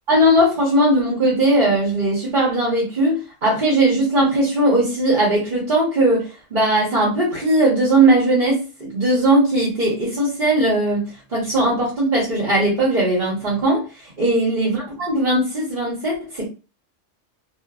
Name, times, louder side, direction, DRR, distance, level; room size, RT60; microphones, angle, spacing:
voice 1, 0.1-13.8 14.2-16.5, right 1 dB, 40° right, -6 dB, 1.2 m, -19 dB
2.6 x 2.5 x 2.3 m, 0.33 s
omnidirectional pair, 1.3 m